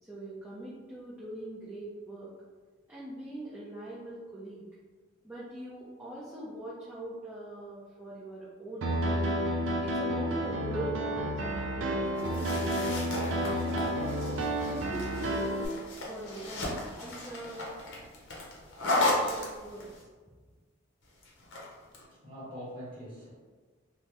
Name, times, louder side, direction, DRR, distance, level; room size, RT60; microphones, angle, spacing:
voice 1, 0.0-2.4 2.9-4.6 5.2-9.2 9.8-11.3 11.5-12.8 13.6-14.2 14.6-15.8 16.0-17.7 18.8-20.0, right 1 dB, 10° right, -10 dB, 0.5 m, -42 dB
Piano, 8.8-15.7, right 1 dB, 65° right, 0.4 m, -31 dB
sound 1, 12.1-20.0 21.2-22.0, left 1 dB, 60° left, 0.7 m, -35 dB
voice 2, 21.8-23.3, equal, 25° right, -7 dB, 1.2 m, -44 dB
3.3 x 2.0 x 2.8 m, 1.4 s
head